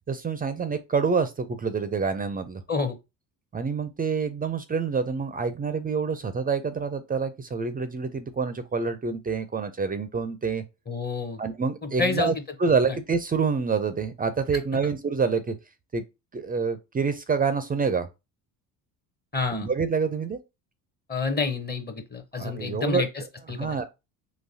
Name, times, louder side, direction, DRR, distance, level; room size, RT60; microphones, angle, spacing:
voice 1, 0.1-2.6 3.5-10.6 11.4-12.3 12.6-15.5 15.9-16.0 16.3-18.1 19.5-20.4 22.4-23.0 23.5-23.8, right 5 dB, 20° right, 0.4 m, -27 dB
voice 2, 10.9-11.4 11.8-12.3 12.9-13.0 19.3-19.7 21.1-23.1 23.5-23.7, left 4 dB, 20° left, 0.7 m, -28 dB
3.9 x 2.3 x 2.7 m
hypercardioid pair, 60°, 48 cm